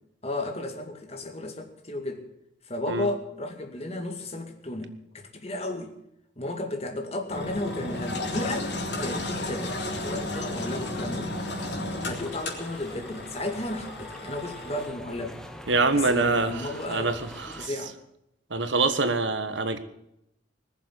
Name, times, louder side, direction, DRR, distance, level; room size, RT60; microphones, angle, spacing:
voice 1, 0.2-2.3 2.7-5.9 6.4-8.7 9.0-11.3 12.0-15.4 15.9-17.1 17.6-17.9, left 1 dB, 35° left, 4 dB, 2.2 m, -33 dB
Engine, 7.3-14.9, left 2 dB, 65° left, 3.4 m, -34 dB
sound 1, 7.6-17.7, equal, 5° left, 1.2 m, -43 dB
voice 2, 15.7-17.7 18.5-19.8, right 3 dB, 75° right, 10 dB, 1.4 m, -25 dB
20.0 x 7.2 x 9.5 m, 0.81 s
head